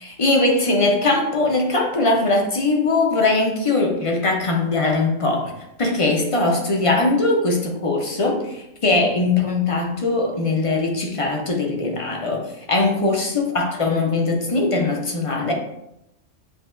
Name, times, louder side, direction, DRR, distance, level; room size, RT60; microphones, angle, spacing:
voice 1, 0.0-5.5 5.8-15.5, left 2 dB, 35° left, 1 dB, 0.6 m, -21 dB
7.5 x 2.8 x 2.5 m, 0.85 s
omnidirectional pair, 1.3 m